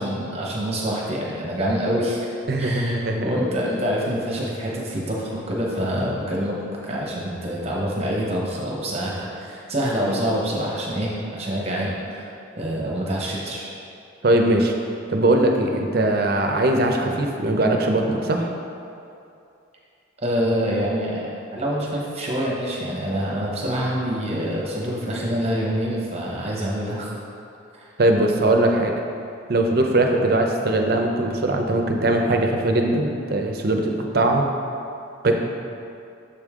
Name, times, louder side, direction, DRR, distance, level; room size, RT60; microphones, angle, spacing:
voice 1, 0.0-2.3 2.6-3.0 3.2-12.3 12.5-13.7 20.2-27.1 27.7-27.9, equal, 30° right, -3 dB, 0.9 m, -26 dB
voice 2, 2.5-3.3 10.0-10.2 14.2-14.7 15.1-18.5 28.0-28.9 29.5-34.4 35.2-35.3, right 1 dB, 50° right, 2 dB, 0.6 m, -20 dB
6.9 x 5.3 x 3.6 m, 2.6 s
head